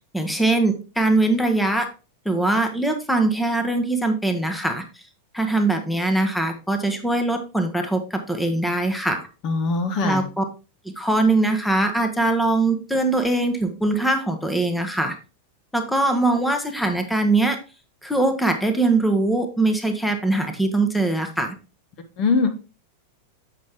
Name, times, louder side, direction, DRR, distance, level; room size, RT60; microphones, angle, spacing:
voice 1, 0.1-1.9 2.2-4.8 5.3-9.3 10.0-10.4 10.8-15.1 15.7-17.6 18.0-21.5, right 2 dB, 5° left, 6 dB, 1.1 m, -22 dB
voice 2, 9.4-10.3 22.2-22.5, left 4 dB, 40° left, 7 dB, 1.0 m, -21 dB
7.6 x 5.8 x 3.5 m, 0.32 s
figure-of-eight pair, 90°, 0 cm